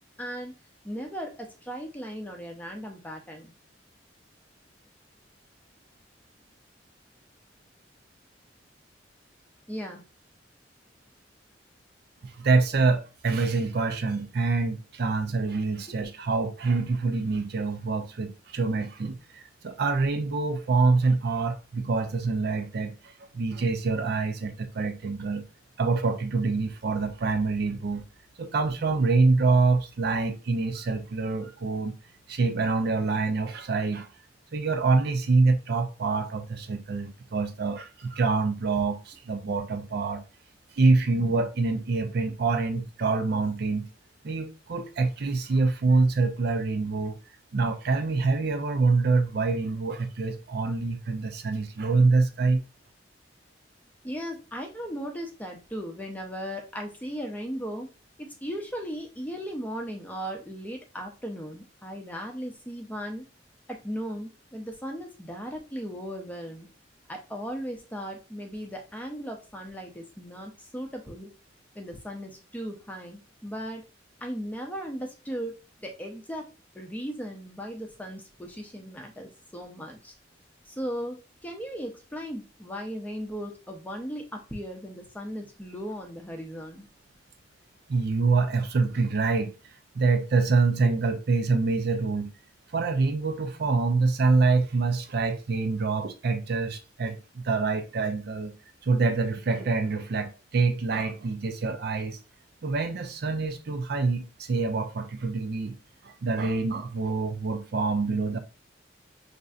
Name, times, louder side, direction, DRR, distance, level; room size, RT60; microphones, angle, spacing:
voice 1, 0.2-0.5 0.8-3.5 9.7-10.0 15.9-16.0 54.0-57.9 58.2-63.2 63.7-66.7 67.1-71.3 71.7-73.8 74.2-76.5 76.7-80.1 80.7-86.9, equal, 10° left, 0.6 m, -37 dB
voice 2, 12.2-25.5 25.8-28.0 28.4-32.0 32.3-34.1 34.5-40.2 40.8-43.9 44.2-47.2 47.5-52.6 87.9-92.3 92.7-98.5 98.8-102.2 102.6-105.8 106.0-108.4, right 3 dB, 55° right, 0.5 m, -26 dB
5.3 x 2.6 x 2.3 m
head